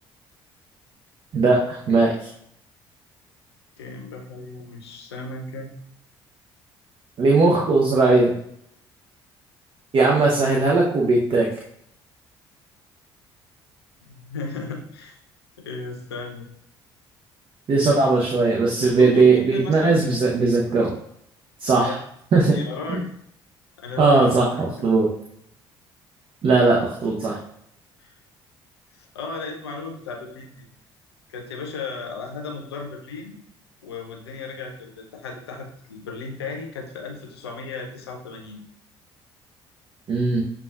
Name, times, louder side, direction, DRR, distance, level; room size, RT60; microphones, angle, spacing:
voice 1, 1.3-2.1 7.2-8.3 9.9-11.5 17.7-20.9 21.6-21.9 22.3-22.6 22.9-23.0 24.0-25.1 26.4-27.4 40.1-40.4, right 3 dB, 40° right, -2 dB, 0.7 m, -18 dB
voice 2, 3.8-5.7 14.1-15.2 15.6-16.5 17.7-18.1 18.8-20.0 21.7-22.0 22.5-23.1 23.8-24.3 28.0-28.1 28.9-30.7 31.3-33.4 33.8-38.6, left 4 dB, 80° left, 2 dB, 0.6 m, -35 dB
6.7 x 2.3 x 2.4 m, 0.72 s
figure-of-eight pair, 50°, 13 cm